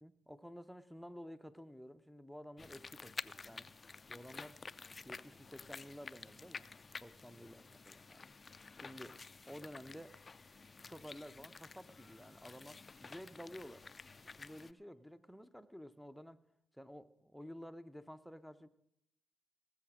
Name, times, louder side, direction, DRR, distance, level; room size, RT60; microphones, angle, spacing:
voice 1, 0.0-3.7 4.1-4.6 5.0-6.7 7.0-8.2 8.8-9.2 9.5-10.2 10.9-13.8 14.2-16.4 16.7-18.7, equal, ahead, 9 dB, 0.9 m, -52 dB
sound 1, 2.6-14.7, left 4 dB, 35° left, 0.4 m, -51 dB
sound 2, 11.8-15.1, right 1 dB, 50° right, 1.9 m, -79 dB
18.5 x 7.1 x 6.3 m, 0.79 s
hypercardioid pair, 50°, 0 cm